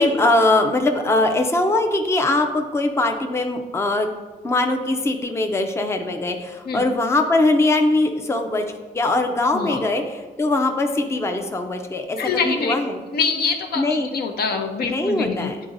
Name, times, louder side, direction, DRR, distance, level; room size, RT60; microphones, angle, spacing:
voice 1, 0.0-4.1 4.4-8.7 8.9-13.0 13.8-14.1 14.9-15.6, left 2 dB, 15° left, 5 dB, 0.5 m, -21 dB
voice 2, 9.5-9.8 12.2-12.7 13.1-15.5, left 5 dB, 70° left, 4 dB, 0.7 m, -24 dB
9.3 x 3.9 x 2.6 m, 1.4 s
cardioid pair, 95°, 17 cm